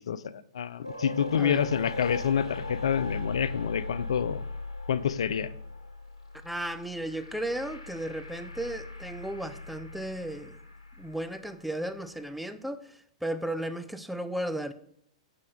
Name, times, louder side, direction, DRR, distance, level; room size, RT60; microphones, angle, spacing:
voice 1, 0.1-4.4 4.9-5.5, left 8 dB, 70° left, 0.4 m, -28 dB
sound 1, 0.8-11.9, left 2 dB, 90° left, 1.2 m, -39 dB
voice 2, 1.3-1.7 6.4-10.6 11.0-14.7, right 1 dB, ahead, 0.5 m, -35 dB
6.7 x 5.1 x 3.5 m
hypercardioid pair, 105°, 3 cm